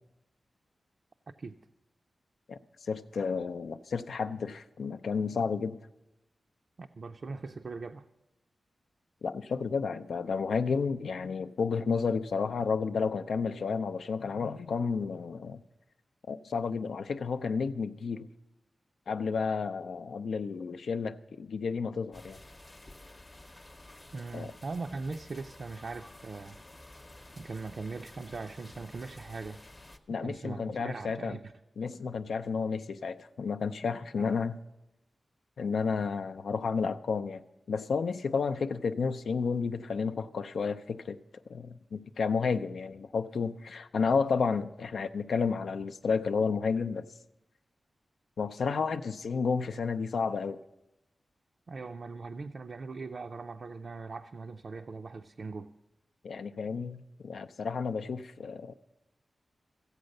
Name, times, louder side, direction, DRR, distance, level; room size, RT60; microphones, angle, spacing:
voice 1, 2.9-5.8 9.2-15.6 16.3-18.3 19.1-22.4 24.3-24.5 30.1-31.4 31.8-34.6 35.6-37.4 37.7-41.2 41.5-47.1 48.4-50.6 56.2-58.7, left 5 dB, 80° left, 0.5 m, -31 dB
voice 2, 6.8-8.1 24.1-26.6 27.4-29.6 30.2-31.5 34.2-34.4 51.7-55.7, right 4 dB, 50° right, 0.4 m, -40 dB
sound 1, 22.1-30.0, left 1 dB, 20° left, 0.7 m, -51 dB
15.0 x 8.0 x 6.5 m
wide cardioid pair, 145°, 0 cm